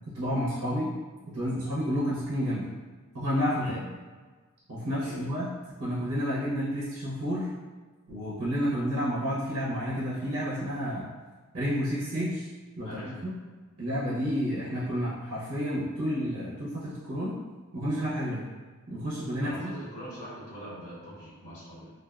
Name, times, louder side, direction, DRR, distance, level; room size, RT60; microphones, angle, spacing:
voice 1, 0.1-0.9 1.3-2.7 3.1-3.8 4.7-5.5 5.8-7.5 8.1-11.1 11.5-12.5 12.8-13.3 13.8-17.3 17.7-18.4 18.9-19.7, equal, 75° right, -8 dB, 0.7 m, -30 dB
voice 2, 5.0-5.3 12.8-13.3 19.4-21.9, right 1 dB, 75° left, -10 dB, 1.1 m, -43 dB
2.4 x 2.3 x 2.3 m, 1.4 s
head